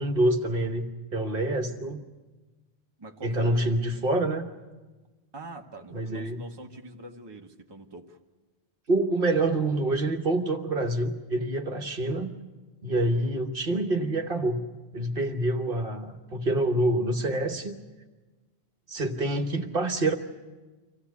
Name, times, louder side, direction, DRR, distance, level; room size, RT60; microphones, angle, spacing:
voice 1, 0.0-2.0 3.2-4.4 5.9-6.4 8.9-12.3 12.8-14.6 14.9-17.8 18.9-20.1, right 2 dB, 55° right, 6 dB, 1.3 m, -26 dB
voice 2, 3.0-3.9 5.3-8.2, right 1 dB, 25° right, 2 dB, 1.2 m, -44 dB
25.0 x 16.0 x 8.3 m, 1.3 s
omnidirectional pair, 1.1 m